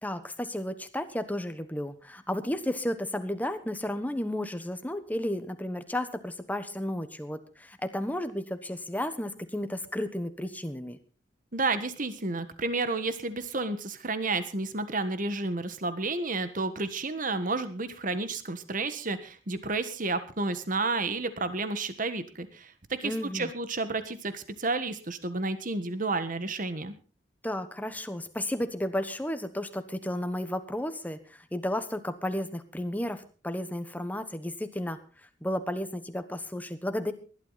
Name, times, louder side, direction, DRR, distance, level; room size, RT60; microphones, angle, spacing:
voice 1, 0.0-11.0 23.0-23.5 27.4-35.0 35.4-37.1, left 1 dB, 10° left, 9 dB, 1.2 m, -33 dB
voice 2, 11.5-26.9, right 3 dB, 45° right, 11 dB, 1.4 m, -31 dB
19.5 x 12.0 x 4.1 m, 0.36 s
head